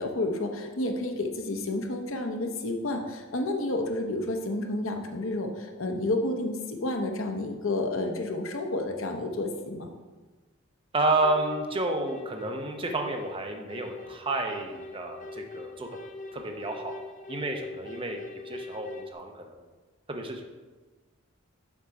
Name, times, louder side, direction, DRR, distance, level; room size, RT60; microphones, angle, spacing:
voice 1, 0.0-9.9, left 2 dB, 70° left, 4 dB, 0.9 m, -30 dB
voice 2, 10.9-15.9 16.3-17.0 17.3-19.6 20.1-20.4, right 2 dB, 25° right, 3 dB, 0.7 m, -30 dB
sound 1, 11.2-19.1, left 3 dB, 35° left, 0.5 m, -43 dB
7.3 x 5.4 x 4.8 m, 1.3 s
head